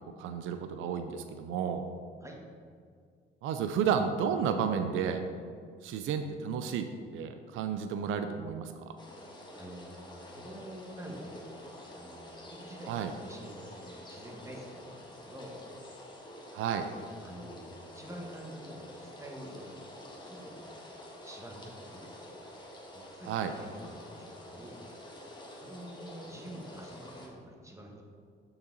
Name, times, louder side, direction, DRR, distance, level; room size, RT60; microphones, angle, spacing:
voice 1, 0.2-1.8 3.4-5.2 5.8-6.8 7.1-8.7 12.9-13.1 16.5-16.8 23.3-23.5, right 7 dB, 85° right, 8 dB, 0.5 m, -31 dB
sound 1, 9.0-27.3, left 1 dB, 20° left, 1.4 m, -48 dB
voice 2, 9.5-11.5 11.9-15.6 17.2-19.8 20.2-20.7 21.2-22.1 22.9-24.8 25.5-28.0, right 1 dB, 15° right, 0 dB, 1.3 m, -47 dB
6.5 x 5.9 x 3.9 m, 2.1 s
cardioid pair, 90°, 20 cm